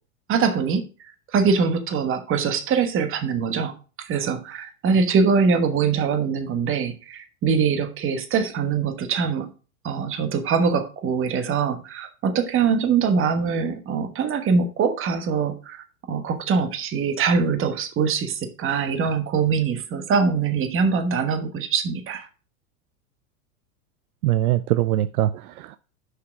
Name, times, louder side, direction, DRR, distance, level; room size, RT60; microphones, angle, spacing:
voice 1, 0.3-0.9 1.3-9.5 9.8-22.3, right 5 dB, 30° right, 1.2 m, -23 dB
voice 2, 24.2-25.8, right 14 dB, 85° right, 0.6 m, -22 dB
6.4 x 5.7 x 4.7 m
supercardioid pair, 120°, 43 cm